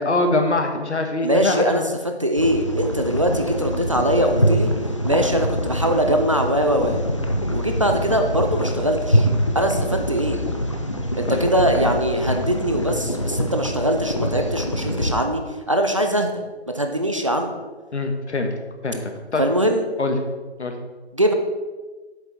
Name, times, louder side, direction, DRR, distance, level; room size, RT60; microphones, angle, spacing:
voice 1, 0.0-1.9 5.2-5.3 11.3-11.4 17.9-18.5 18.8-19.4 20.0-20.2 20.6-20.7, left 2 dB, 80° left, 5 dB, 1.6 m, -23 dB
voice 2, 1.2-1.8 2.2-4.7 5.0-7.0 7.5-9.3 9.5-10.4 11.2-15.4 15.7-16.3 16.7-17.5 19.4-19.9 21.1-21.3, right 1 dB, 30° right, 4 dB, 0.5 m, -21 dB
sound 1, 2.4-15.1, equal, 30° left, 0.5 m, -24 dB
8.0 x 6.5 x 4.4 m, 1.3 s
figure-of-eight pair, 160°, 34 cm